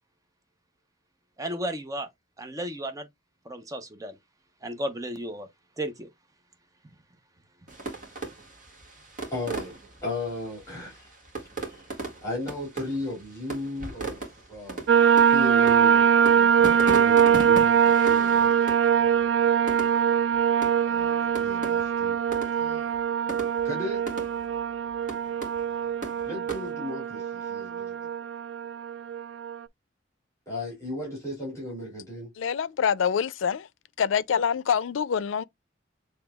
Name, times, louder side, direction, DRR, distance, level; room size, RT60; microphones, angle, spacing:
voice 1, 1.4-2.1 2.4-3.1 3.5-4.2 4.6-5.5 5.8-6.1, right 1 dB, 20° right, 0.7 m, -33 dB
sound 1, 7.7-26.7, right 3 dB, 45° right, 1.8 m, -38 dB
voice 2, 9.3-11.1 11.6-11.9 12.2-14.2 14.5-14.9 15.3-19.2 20.8-22.2 22.5-22.9 23.6-24.1 26.2-28.1 30.5-32.3, left 1 dB, 15° left, 2.7 m, -36 dB
sound 2, 14.9-29.6, right 8 dB, 70° right, 0.3 m, -22 dB
voice 3, 32.4-33.7 34.0-35.4, left 7 dB, 90° left, 0.4 m, -25 dB
7.0 x 3.3 x 2.3 m
head